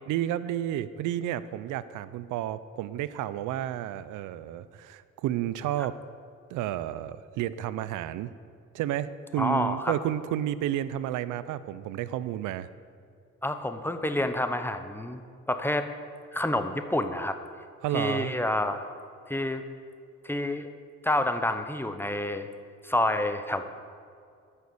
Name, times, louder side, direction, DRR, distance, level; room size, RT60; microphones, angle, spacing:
voice 1, 0.1-6.0 6.5-8.3 8.7-12.7 17.8-18.3, right 12 dB, 90° right, 15 dB, 0.5 m, -31 dB
voice 2, 9.4-9.9 13.4-15.2 15.5-15.9 16.3-17.4 17.9-18.9 19.3-19.6 20.2-20.7 21.0-22.5 22.8-23.6, left 1 dB, 5° left, 8 dB, 0.9 m, -28 dB
14.5 x 6.5 x 7.0 m, 2.3 s
cardioid pair, 90°, 30 cm